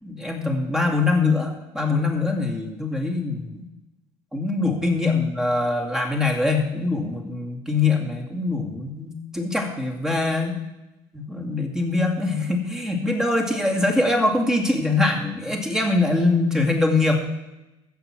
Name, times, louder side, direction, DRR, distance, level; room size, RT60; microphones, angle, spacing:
voice 1, 0.0-3.6 4.3-10.6 11.1-17.2, left 3 dB, 5° right, 2 dB, 2.3 m, -23 dB
14.5 x 7.3 x 7.5 m, 0.99 s
supercardioid pair, 125°, 12 cm